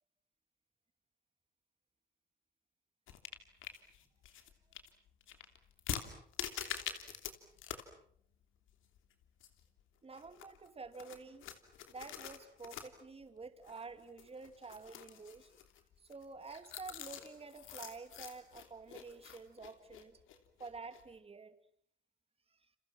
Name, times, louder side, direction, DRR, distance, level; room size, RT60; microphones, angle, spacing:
sound 1, 3.1-7.3 7.6-7.9 8.2-8.3 8.7-9.8 10.1-21.1, left 9 dB, 85° left, 3.1 m, -46 dB
voice 1, 10.0-11.5 11.9-15.5 16.0-20.2 20.6-21.5 22.5-22.6, right 4 dB, 30° right, 10 dB, 2.5 m, -49 dB
29.5 x 29.0 x 6.0 m, 0.64 s
cardioid pair, 90°, 20 cm